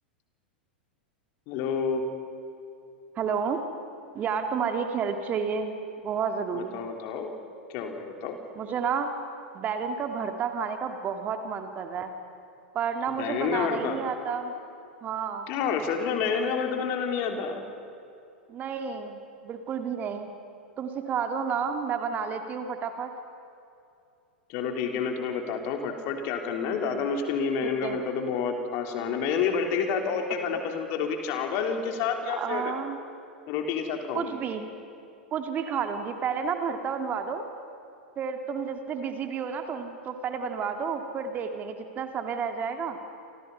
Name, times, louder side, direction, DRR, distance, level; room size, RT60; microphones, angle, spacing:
voice 1, 1.5-2.0 6.5-7.3 7.7-8.4 13.2-14.0 15.5-17.6 24.5-32.7 33.5-34.3, left 6 dB, 45° left, 3 dB, 3.7 m, -29 dB
voice 2, 3.2-3.6 4.1-6.8 8.6-9.1 9.5-12.1 12.7-14.5 15.0-15.5 18.5-20.3 20.8-23.1 27.6-28.0 32.3-33.0 34.1-34.7 35.3-37.5 38.2-43.0, right 6 dB, 30° right, 6 dB, 2.2 m, -31 dB
29.0 x 26.5 x 5.7 m, 2.6 s
figure-of-eight pair, 90°, 6 cm